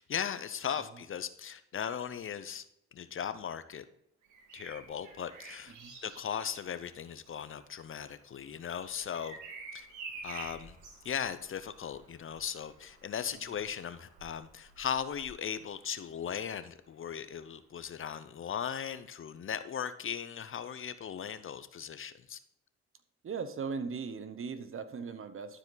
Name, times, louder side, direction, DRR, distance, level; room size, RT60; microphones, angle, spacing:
voice 1, 0.0-2.6 2.9-3.8 4.5-5.7 6.0-9.4 9.7-9.9 10.2-10.7 11.0-22.4, left 8 dB, 45° left, 12 dB, 0.7 m, -38 dB
Bird vocalization bird call bird song, 4.2-16.0 17.7-18.0, right 4 dB, 75° right, 2.0 m, -50 dB
voice 2, 5.7-6.0 13.3-13.5 23.2-25.6, right 5 dB, 45° right, 11 dB, 0.9 m, -39 dB
12.0 x 4.9 x 4.0 m, 0.77 s
cardioid pair, 90°, 30 cm